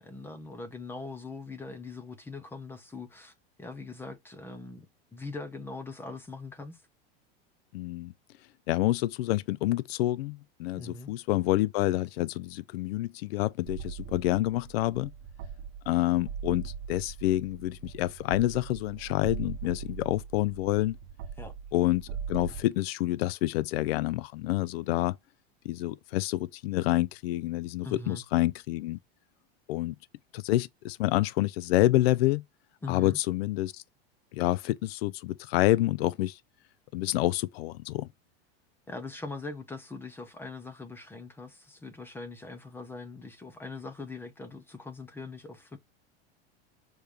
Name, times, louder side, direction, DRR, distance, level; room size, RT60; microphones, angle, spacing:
voice 1, 0.0-4.9 5.1-6.8 10.8-11.1 21.4-21.5 27.8-28.2 32.8-33.2 38.9-45.8, left 3 dB, 5° left, 0.7 m, -41 dB
voice 2, 7.7-8.1 8.7-15.1 15.9-21.0 21.7-25.2 25.6-29.0 29.7-29.9 30.3-32.4 32.9-33.8 34.3-36.4 36.9-38.1, left 16 dB, 75° left, 0.5 m, -28 dB
sound 1, 13.7-22.6, right 7 dB, 30° right, 0.8 m, -41 dB
6.8 x 3.1 x 4.9 m
supercardioid pair, 165°, 31 cm